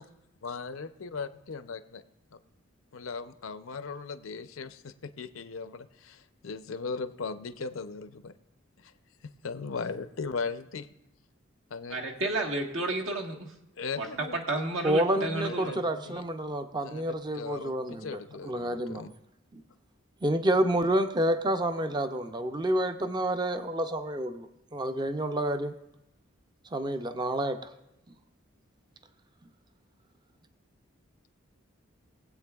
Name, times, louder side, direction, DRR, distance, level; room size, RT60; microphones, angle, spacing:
voice 1, 0.4-2.0 2.3-2.4 2.9-8.3 8.8-8.9 9.4-10.9 11.7-12.0 13.8-14.4 15.1-16.2 16.8-19.1, left 4 dB, 80° left, 11 dB, 0.6 m, -38 dB
voice 2, 11.9-13.5 14.0-14.1 14.3-15.8, right 2 dB, 75° right, 0 dB, 1.4 m, -31 dB
voice 3, 14.8-19.1 19.5-19.6 20.2-25.7 26.7-27.7, right 1 dB, 20° right, 8 dB, 0.4 m, -29 dB
21.5 x 8.1 x 2.3 m, 0.86 s
head